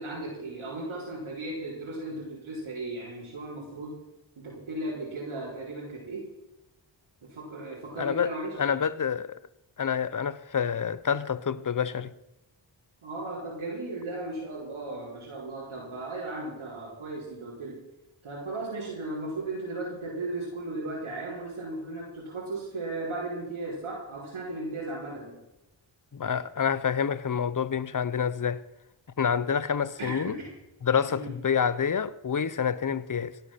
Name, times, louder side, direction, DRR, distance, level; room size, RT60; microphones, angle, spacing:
voice 1, 0.0-4.0 4.4-6.3 7.2-8.6 13.0-17.9 18.2-25.4 30.0-30.5 31.1-31.3, right 2 dB, 85° right, 4.4 m, -36 dB
voice 2, 8.0-9.4 9.8-12.1 26.1-28.6 29.2-30.4 30.8-33.3, left 7 dB, 40° left, 0.9 m, -28 dB
16.5 x 10.0 x 5.9 m
cardioid pair, 45°, 48 cm